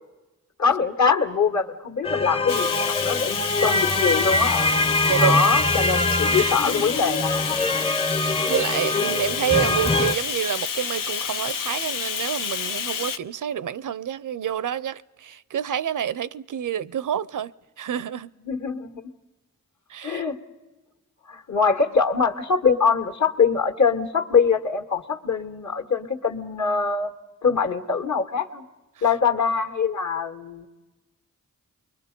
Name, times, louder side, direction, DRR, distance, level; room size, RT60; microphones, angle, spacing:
voice 1, 0.6-4.8 5.2-7.6 18.4-19.0 20.0-20.4 21.3-27.1 27.4-28.7 29.0-30.7, left 5 dB, 60° left, 1.8 m, -23 dB
sound 1, 2.0-10.1, left 2 dB, 20° left, 0.7 m, -24 dB
Bathtub (filling or washing), 2.5-13.2, left 7 dB, 85° left, 0.8 m, -29 dB
voice 2, 5.0-5.5 6.3-6.9 7.8-17.5 17.8-18.3 19.9-20.2, right 9 dB, 75° right, 0.6 m, -28 dB
29.5 x 22.5 x 5.3 m
cardioid pair, 65°, 32 cm